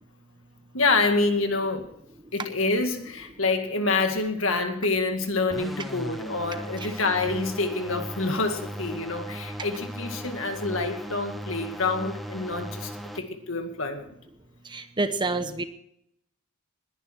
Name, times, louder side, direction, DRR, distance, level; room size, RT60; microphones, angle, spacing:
voice 1, 0.7-1.9 2.3-14.1, left 3 dB, 65° left, 6 dB, 2.0 m, -27 dB
sound 1, 5.5-13.2, right 1 dB, ahead, 1.2 m, -37 dB
voice 2, 14.7-15.6, right 3 dB, 20° right, 10 dB, 1.0 m, -27 dB
20.0 x 11.0 x 4.5 m, 0.75 s
head